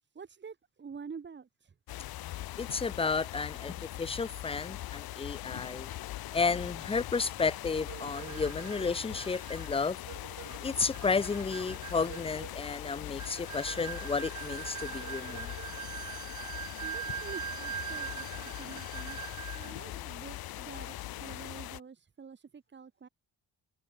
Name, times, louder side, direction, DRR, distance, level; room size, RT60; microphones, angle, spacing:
voice 1, 0.1-1.7 16.8-19.2 19.5-23.1, right 6 dB, 30° right, 7.8 m, -47 dB
sound 1, 1.9-21.8, left 15 dB, 70° left, 2.4 m, -41 dB
voice 2, 2.6-5.9 6.3-10.0 10.6-15.5, left 4 dB, 15° left, 1.0 m, -32 dB
sound 2, 7.9-19.8, right 10 dB, 50° right, 4.1 m, -42 dB
cardioid pair, 150°, 37 cm